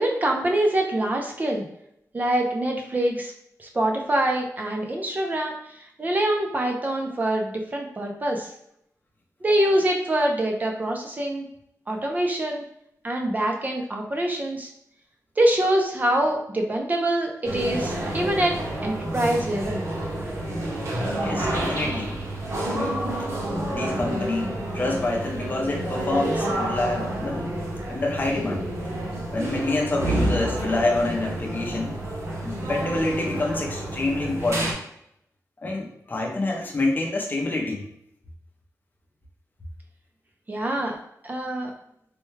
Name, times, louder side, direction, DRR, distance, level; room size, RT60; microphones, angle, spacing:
voice 1, 0.0-1.7 2.1-3.3 3.6-8.5 9.4-11.5 11.9-12.6 13.0-14.7 15.4-19.8 40.5-40.9 41.2-41.7, right 1 dB, 30° right, 1 dB, 0.5 m, -25 dB
sound 1, 17.4-34.7, right 1 dB, 50° right, 0.8 m, -29 dB
voice 2, 21.2-22.2 22.6-23.1 23.7-27.5 27.9-28.6 29.3-32.0 32.4-34.7 35.6-37.9, left 2 dB, 30° left, -1 dB, 0.6 m, -27 dB
3.4 x 2.2 x 3.1 m, 0.74 s
wide cardioid pair, 170°, 6 cm